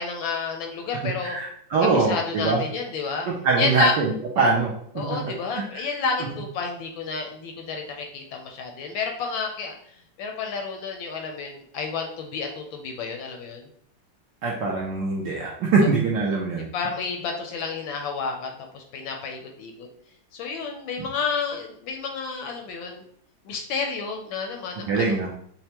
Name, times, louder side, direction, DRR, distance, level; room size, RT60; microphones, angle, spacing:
voice 1, 0.0-1.4 1.9-3.3 3.6-3.9 5.0-13.7 16.7-19.9 20.3-23.0 23.4-25.1, left 5 dB, 75° left, 2 dB, 1.2 m, -30 dB
voice 2, 1.2-2.6 3.4-5.2 5.5-5.8 14.4-16.7 21.0-21.1 24.9-25.3, right 4 dB, 75° right, -2 dB, 1.0 m, -23 dB
5.5 x 2.1 x 2.8 m, 0.65 s
omnidirectional pair, 2.4 m